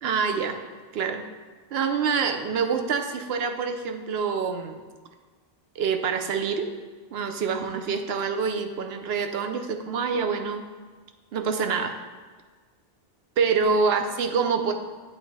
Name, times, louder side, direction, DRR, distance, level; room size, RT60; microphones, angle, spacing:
voice 1, 0.0-0.6 0.9-1.3 1.7-4.8 5.8-6.7 7.1-10.6 11.3-11.9 13.4-14.7, right 5 dB, 75° right, 6 dB, 0.8 m, -26 dB
7.8 x 3.2 x 4.6 m, 1.4 s
omnidirectional pair, 1.1 m